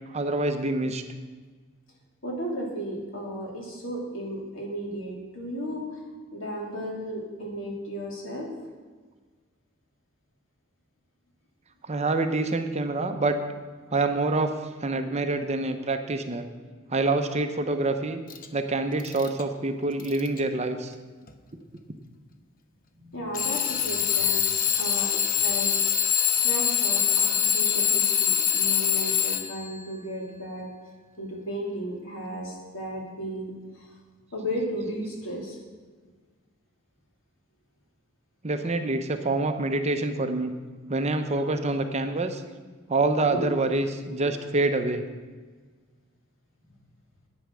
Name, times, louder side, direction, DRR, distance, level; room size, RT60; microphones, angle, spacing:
voice 1, 0.1-1.0 11.9-13.4 13.9-16.4 16.9-18.2 18.5-20.9 38.4-40.5 40.9-42.4 42.9-45.0, right 2 dB, 35° right, 7 dB, 0.7 m, -26 dB
voice 2, 2.2-6.0 6.3-8.5 23.0-25.8 26.2-30.7 31.2-33.9 34.3-35.6 43.3-43.5, equal, 75° left, -1 dB, 3.0 m, -34 dB
Alarm / Clock, 18.3-18.5 19.0-19.4 20.0-20.4 21.3-21.4 23.3-29.7, left 9 dB, 45° left, 0.7 m, -24 dB
9.9 x 9.3 x 6.2 m, 1.4 s
head